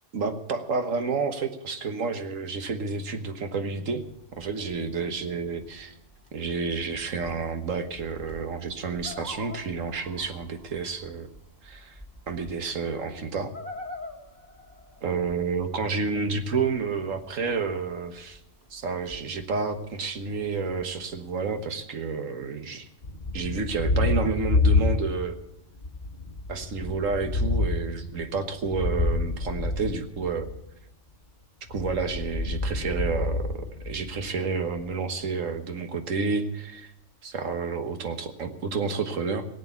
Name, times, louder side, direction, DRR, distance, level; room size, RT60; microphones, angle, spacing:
voice 1, 0.1-4.0 4.3-5.9 6.3-11.3 11.6-12.0 12.3-13.5 15.0-18.4 18.7-22.9 23.3-25.4 26.5-30.5 31.7-36.9 37.2-39.5, right 4 dB, 85° right, 8 dB, 1.7 m, -30 dB
sound 1, 4.0-21.7, left 1 dB, 15° right, 2.4 m, -47 dB
Thunder, 23.0-25.4 25.8-30.6 31.6-34.3, left 3 dB, 40° left, 1.1 m, -28 dB
17.5 x 8.4 x 8.2 m, 0.82 s
omnidirectional pair, 1.3 m